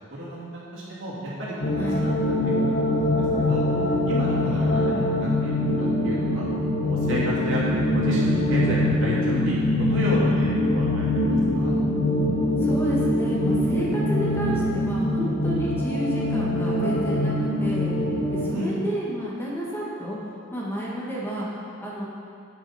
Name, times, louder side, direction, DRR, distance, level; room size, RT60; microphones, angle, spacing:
voice 1, 0.1-2.1 2.6-3.6 4.0-6.5 6.8-11.7 18.5-18.8, equal, 65° right, -7 dB, 2.7 m, -32 dB
sound 1, 1.6-18.5, left 1 dB, 55° left, 1.2 m, -23 dB
voice 2, 4.4-4.7 12.6-17.9 18.3-20.2 20.5-21.5 21.8-22.1, equal, 10° left, -6 dB, 1.8 m, -30 dB
10.0 x 8.9 x 4.3 m, 2.4 s
head